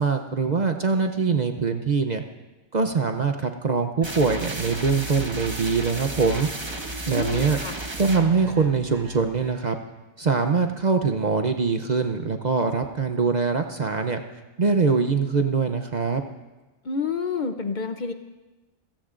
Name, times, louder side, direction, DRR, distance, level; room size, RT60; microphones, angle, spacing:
voice 1, 0.0-2.2 2.7-6.5 7.1-7.6 8.0-9.8 10.2-14.2 14.6-16.2, right 4 dB, 45° right, 6 dB, 0.7 m, -23 dB
sound 1, 4.0-9.7, right 1 dB, 25° right, 1.0 m, -34 dB
voice 2, 7.1-7.8 16.8-18.1, left 5 dB, 45° left, 7 dB, 0.7 m, -29 dB
27.5 x 16.5 x 2.5 m, 1.1 s
omnidirectional pair, 1.2 m